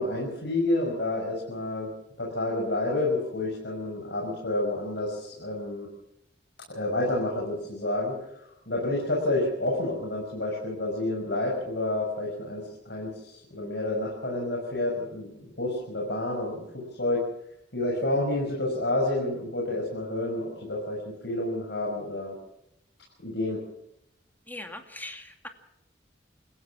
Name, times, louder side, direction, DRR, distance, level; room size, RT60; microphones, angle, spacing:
voice 1, 0.0-1.9 2.2-5.9 6.7-17.2 17.7-22.3 23.2-23.6, left 2 dB, 65° left, -2 dB, 6.5 m, -29 dB
voice 2, 24.5-25.5, left 2 dB, 10° left, 6 dB, 2.3 m, -40 dB
28.0 x 16.0 x 6.1 m, 0.80 s
head